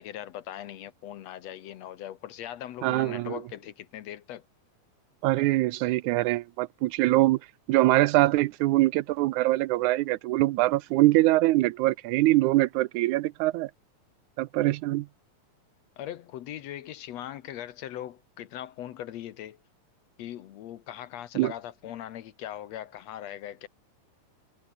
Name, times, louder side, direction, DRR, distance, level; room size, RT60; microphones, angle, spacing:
voice 1, 0.0-4.4 16.0-19.6 20.2-23.7, left 11 dB, 65° left, 2.0 m, -40 dB
voice 2, 2.8-3.4 5.2-7.4 7.7-13.7 14.4-15.1 21.4-21.5, right 18 dB, 85° right, 2.0 m, -23 dB
omnidirectional pair, 3.5 m